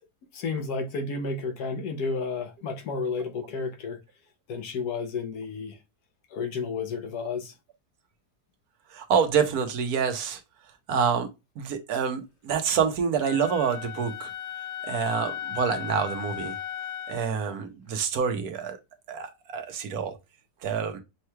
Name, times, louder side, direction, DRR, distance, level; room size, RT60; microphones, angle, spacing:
voice 1, 0.3-4.0 4.5-5.8 6.3-7.5, left 4 dB, 70° left, 1.3 m, -31 dB
voice 2, 8.9-10.4 10.9-11.3 11.6-14.3 14.8-16.6 17.1-18.8 19.1-20.2 20.6-21.0, right 6 dB, 70° right, 1.2 m, -27 dB
Wind instrument woodwind instrument, 13.2-17.3, left 10 dB, 55° left, 0.8 m, -36 dB
6.4 x 3.0 x 2.2 m
omnidirectional pair, 1.7 m